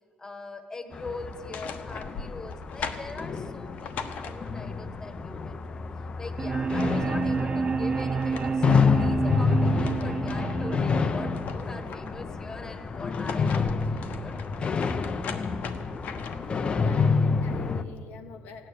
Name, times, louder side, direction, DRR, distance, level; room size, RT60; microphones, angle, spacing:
voice 1, 0.2-5.8 6.2-14.4, left 2 dB, 20° left, 8 dB, 1.3 m, -42 dB
sound 1, 0.9-17.8, left 4 dB, 35° left, 0.7 m, -28 dB
sound 2, 1.3-4.8 6.3-6.4 6.6-7.5 8.0-10.6 11.0-12.4 13.0-16.6, left 5 dB, 65° left, 1.2 m, -40 dB
sound 3, 6.4-12.4, right 5 dB, 35° right, 0.4 m, -30 dB
voice 2, 16.4-18.7, left 6 dB, 90° left, 4 dB, 1.3 m, -44 dB
16.0 x 9.7 x 8.5 m, 2.5 s
cardioid pair, 120°, 3 cm